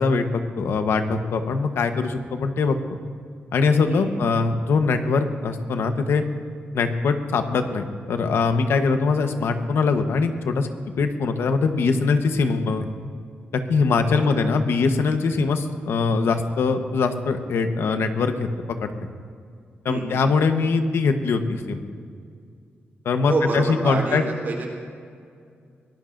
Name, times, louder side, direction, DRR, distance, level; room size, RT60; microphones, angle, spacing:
voice 1, 0.0-2.8 3.5-6.2 6.7-10.7 11.0-12.9 13.5-18.5 18.8-18.9 19.8-21.8 23.0-24.2, left 4 dB, 80° left, 7 dB, 1.0 m, -22 dB
voice 2, 19.9-20.2 23.3-24.7, right 3 dB, 55° right, -1 dB, 3.3 m, -27 dB
23.5 x 18.0 x 2.6 m, 2.2 s
wide cardioid pair, 155°, 4 cm